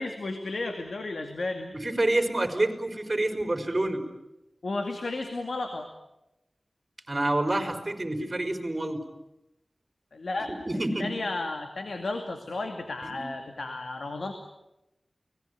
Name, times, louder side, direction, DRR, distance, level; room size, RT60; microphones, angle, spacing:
voice 1, 0.0-1.7 4.6-5.9 10.1-10.5 11.0-14.3, left 2 dB, 80° left, 5 dB, 2.4 m, -33 dB
voice 2, 1.7-4.0 7.1-9.0 10.4-11.1 13.1-13.3, right 1 dB, 35° right, 6 dB, 4.7 m, -28 dB
29.5 x 20.0 x 9.4 m, 0.92 s
wide cardioid pair, 60°, 0 cm